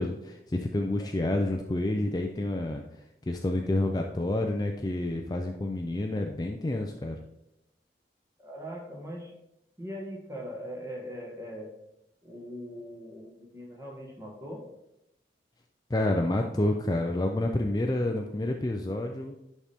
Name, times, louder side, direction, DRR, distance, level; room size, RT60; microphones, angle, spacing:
voice 1, 0.0-2.8 3.3-7.2 15.9-19.4, left 1 dB, 20° left, 3 dB, 0.4 m, -29 dB
voice 2, 8.4-9.3 9.8-11.7 12.2-14.6, equal, 15° right, -1 dB, 1.6 m, -40 dB
11.0 x 4.2 x 3.5 m, 0.85 s
head